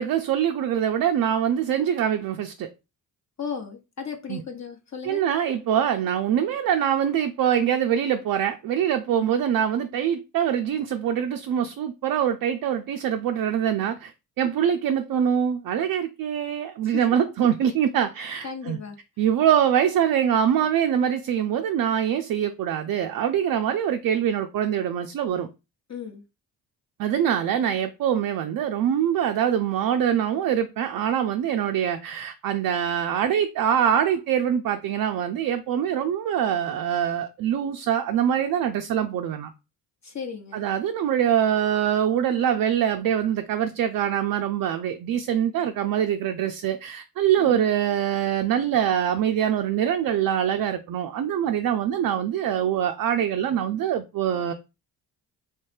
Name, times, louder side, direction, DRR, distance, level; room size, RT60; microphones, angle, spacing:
voice 1, 0.0-2.7 4.3-4.4 5.0-14.1 14.4-18.8 19.2-25.5 27.0-39.5 40.5-54.5, right 9 dB, 50° right, 0.5 m, -24 dB
voice 2, 3.4-5.2 9.1-9.3 16.8-17.0 18.4-19.0 25.9-26.2 40.0-40.7 47.4-47.6, left 6 dB, 40° left, 0.9 m, -35 dB
3.0 x 2.8 x 3.3 m
hypercardioid pair, 45°, 45 cm